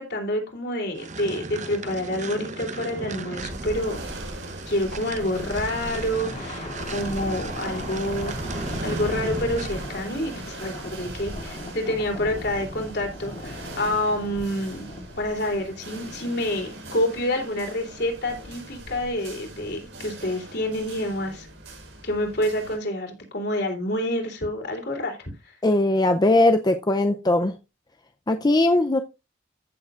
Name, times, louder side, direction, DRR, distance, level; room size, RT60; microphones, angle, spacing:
voice 1, 0.0-4.0 4.7-14.9 15.2-21.5 22.0-25.5, left 1 dB, 55° left, 3.3 m, -28 dB
sound 1, 1.0-9.9, right 3 dB, 40° right, 0.9 m, -36 dB
sound 2, 3.4-22.8, right 1 dB, 70° right, 6.3 m, -39 dB
Thunder, 5.2-16.9, left 1 dB, 40° left, 1.9 m, -39 dB
voice 2, 25.6-27.5 28.3-29.0, left 2 dB, 20° left, 0.5 m, -20 dB
15.0 x 6.7 x 2.5 m
head